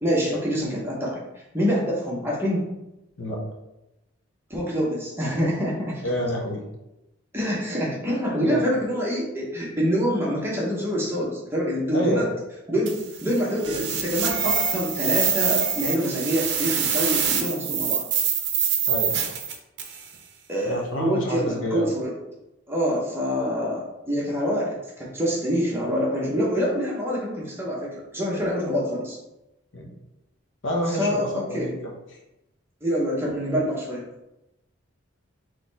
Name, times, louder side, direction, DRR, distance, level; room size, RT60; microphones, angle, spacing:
voice 1, 0.0-1.2 1.5-2.7 4.5-6.0 7.3-12.3 12.7-18.0 20.5-22.1 22.7-29.2 30.9-31.7 32.8-34.0, equal, 10° right, -4 dB, 0.9 m, -26 dB
voice 2, 6.0-6.6 8.5-8.7 11.9-12.3 18.9-19.2 20.6-22.0 29.7-29.9 30.6-31.9, equal, 60° left, 0 dB, 0.9 m, -28 dB
sound 1, 12.9-20.1, right 7 dB, 55° right, 0.7 m, -25 dB
4.1 x 3.1 x 4.0 m, 0.92 s
head